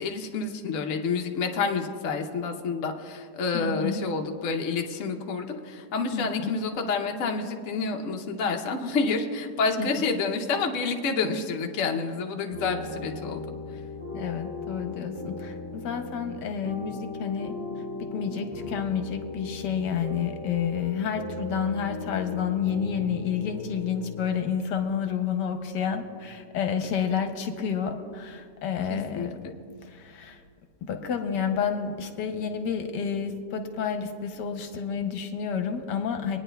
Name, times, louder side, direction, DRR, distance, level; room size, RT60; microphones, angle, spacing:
voice 1, 0.0-13.5 28.9-29.5, left 4 dB, 55° left, 3 dB, 1.0 m, -29 dB
voice 2, 3.5-4.0 6.1-6.6 9.8-9.9 14.1-17.5 18.0-29.3 29.8-30.4 30.8-36.4, left 7 dB, 80° left, 6 dB, 1.4 m, -30 dB
sound 1, 12.5-24.3, left 2 dB, 10° left, 3.1 m, -38 dB
22.5 x 9.5 x 2.2 m, 2.1 s
omnidirectional pair, 1.9 m